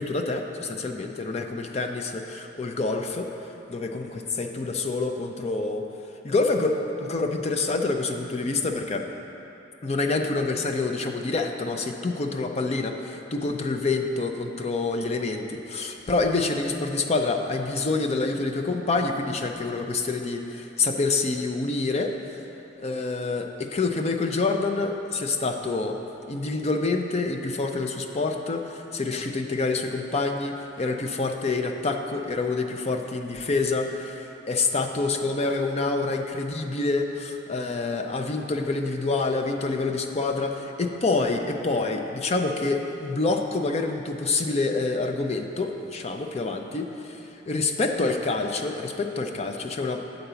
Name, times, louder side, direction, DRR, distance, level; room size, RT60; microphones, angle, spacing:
voice 1, 0.0-3.3 3.7-5.8 6.2-9.0 9.8-22.1 22.8-26.0 26.3-47.2 47.5-50.0, left 3 dB, 35° left, 4 dB, 0.5 m, -27 dB
9.0 x 4.0 x 6.8 m, 2.9 s
head